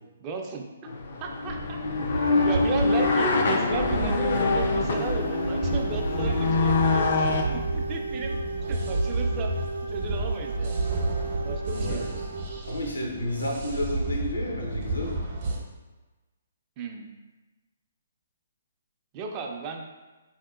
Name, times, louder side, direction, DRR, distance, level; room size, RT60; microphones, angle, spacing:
voice 1, 0.2-0.6 1.2-1.8 2.3-8.3 8.7-9.5 9.8-10.8 11.4-12.2 16.8-17.1 19.1-19.8, right 4 dB, 30° right, 2 dB, 0.4 m, -34 dB
sound 1, 0.9-7.4, left 3 dB, 55° left, 0.4 m, -25 dB
sound 2, 1.5-15.6, right 2 dB, 50° right, 0.7 m, -31 dB
voice 2, 2.0-2.4 11.7-12.1 12.6-15.2, left 1 dB, 85° left, -1 dB, 0.8 m, -32 dB
sound 3, 4.4-12.7, right 3 dB, 90° right, 0.5 m, -35 dB
3.5 x 2.7 x 2.3 m, 1.2 s
hypercardioid pair, 140°, 0 cm